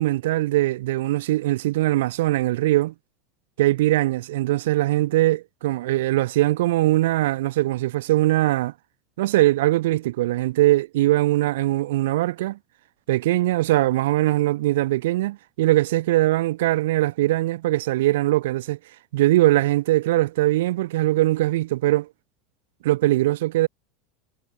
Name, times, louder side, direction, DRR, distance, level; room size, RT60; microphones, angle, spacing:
voice 1, 0.0-2.9 3.6-8.7 9.2-12.6 13.1-18.8 19.1-22.1 22.8-23.7, right 16 dB, 85° right, 1.5 m, -21 dB
supercardioid pair, 130°, 0 cm